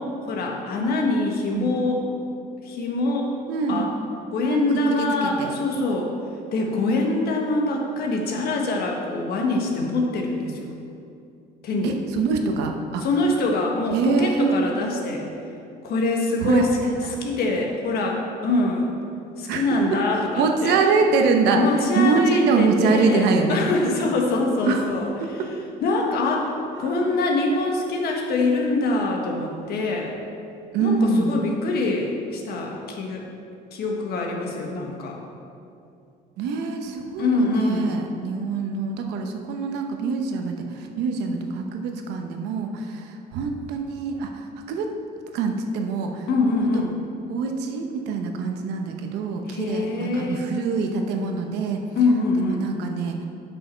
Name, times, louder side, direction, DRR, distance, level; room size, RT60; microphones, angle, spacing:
voice 1, 0.0-2.0 2.6-3.3 3.7-3.9 4.3-6.1 6.5-10.7 11.6-12.0 13.0-15.3 15.8-16.7 17.2-18.9 19.4-20.8 21.6-25.4 25.8-30.1 30.8-33.2 33.7-35.2 37.2-38.0 46.3-46.9 49.5-50.5 51.9-52.6, left 2 dB, 70° left, 1 dB, 1.4 m, -24 dB
voice 2, 3.5-3.9 4.5-4.6 4.9-5.6 11.8-13.0 13.9-14.6 16.4-16.9 19.5-19.8 20.1-21.6 21.9-23.6 24.7-24.9 25.2-25.3 26.8-26.9 30.7-31.4 36.4-44.9 45.3-46.3 46.6-46.8 47.3-51.8 52.4-53.2, right 4 dB, 90° right, 4 dB, 0.9 m, -24 dB
8.3 x 5.6 x 5.7 m, 2.5 s
cardioid pair, 110°, 17 cm